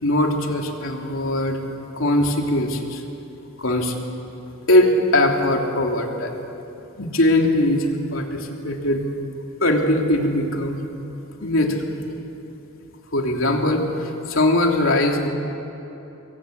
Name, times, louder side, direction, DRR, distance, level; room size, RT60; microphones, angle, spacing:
voice 1, 0.0-1.6 1.9-3.0 3.6-3.9 4.7-6.5 7.0-9.0 9.6-10.8 11.4-11.8 13.1-15.3, left 1 dB, 75° left, 1 dB, 3.1 m, -20 dB
26.5 x 22.0 x 8.3 m, 2.9 s
head